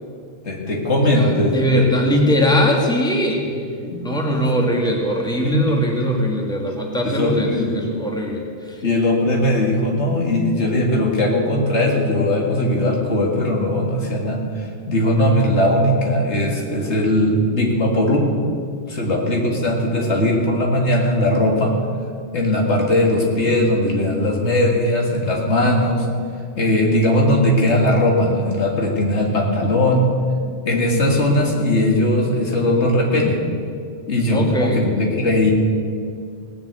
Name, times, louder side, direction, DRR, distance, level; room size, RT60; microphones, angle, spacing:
voice 1, 0.4-2.1 3.4-4.5 5.4-5.8 7.0-7.8 8.8-18.3 18.9-21.7 22.3-26.1 26.6-30.1 30.7-33.4 34.1-35.5, left 1 dB, 70° left, 0 dB, 2.2 m, -19 dB
voice 2, 1.1-3.5 4.0-8.4 34.3-34.8, equal, 5° left, 0 dB, 1.8 m, -20 dB
18.0 x 7.2 x 8.1 m, 2.2 s
omnidirectional pair, 1.2 m